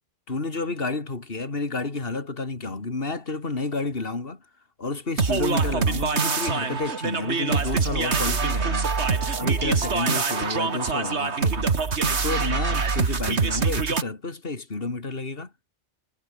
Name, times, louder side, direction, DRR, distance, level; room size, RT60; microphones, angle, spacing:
voice 1, 0.3-4.4 4.8-8.9 9.4-11.8 12.2-15.5, left 3 dB, 60° left, 3.0 m, -30 dB
sound 1, 5.2-14.0, right 5 dB, 85° right, 2.2 m, -24 dB
omnidirectional pair, 1.1 m